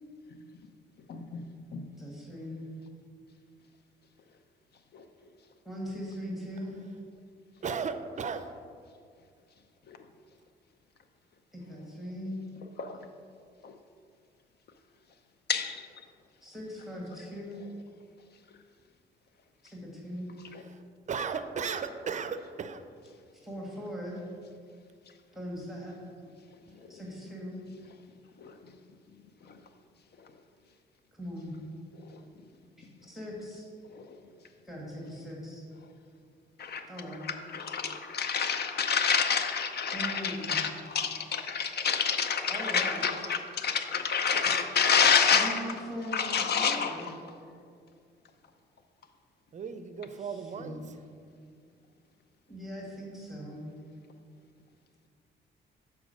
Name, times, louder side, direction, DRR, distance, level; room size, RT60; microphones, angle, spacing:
voice 1, 1.1-1.8 12.8-13.0 13.6-13.7 15.5-15.8 28.4-28.5 36.6-36.8 37.5-45.6 46.1-46.9, left 6 dB, 55° left, 8 dB, 0.7 m, -28 dB
voice 2, 2.0-2.7 5.7-6.8 11.5-12.4 16.4-17.6 19.6-20.3 23.3-24.2 25.3-26.1 26.9-27.6 31.2-31.5 33.0-33.7 34.7-35.6 36.9-37.2 39.9-40.5 42.5-43.1 45.3-47.1 50.2-50.7 52.5-53.6, equal, ahead, -3 dB, 1.8 m, -40 dB
voice 3, 7.6-8.5 20.7-20.8 21.1-22.8 49.5-50.8, right 6 dB, 40° right, 10 dB, 0.5 m, -35 dB
6.2 x 4.6 x 6.4 m, 2.2 s
cardioid pair, 90°, 20 cm